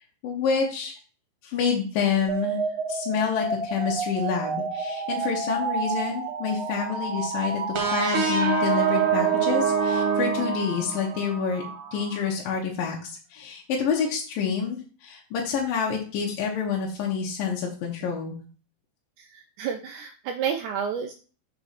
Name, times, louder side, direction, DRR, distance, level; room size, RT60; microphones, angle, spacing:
voice 1, 0.2-1.0 1.4-2.6 2.9-11.6 11.9-18.4, left 6 dB, 75° left, -2 dB, 2.8 m, -28 dB
sound 1, 2.3-12.3, right 4 dB, 45° right, 2.4 m, -32 dB
sound 2, 7.7-11.3, right 6 dB, 60° right, 2.9 m, -24 dB
voice 2, 19.2-21.1, right 7 dB, 80° right, 6 dB, 1.8 m, -30 dB
6.2 x 4.3 x 5.8 m, 0.39 s
omnidirectional pair, 4.1 m